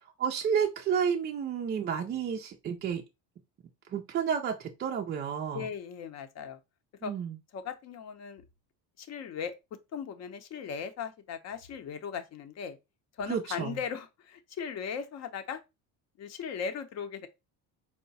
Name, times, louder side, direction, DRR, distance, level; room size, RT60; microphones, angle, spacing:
voice 1, 0.2-3.0 3.9-5.7 7.0-7.4 13.3-13.8, right 7 dB, 30° right, 0.4 m, -31 dB
voice 2, 5.5-6.6 7.0-7.1 7.5-8.4 9.0-9.5 9.9-12.8 13.2-15.6 16.2-17.3, left 7 dB, 45° left, 0.7 m, -38 dB
4.7 x 2.1 x 3.9 m
cardioid pair, 155°, 37 cm